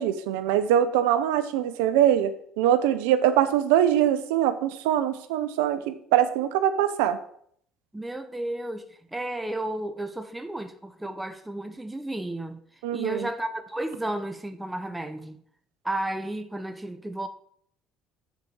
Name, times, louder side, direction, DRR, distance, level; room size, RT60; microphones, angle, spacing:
voice 1, 0.0-7.2 12.8-13.3, right 11 dB, 85° right, 0.6 m, -23 dB
voice 2, 7.9-12.6 12.9-15.4 15.8-17.3, right 1 dB, 10° right, 0.8 m, -33 dB
6.7 x 4.8 x 6.2 m
supercardioid pair, 75°, 0 cm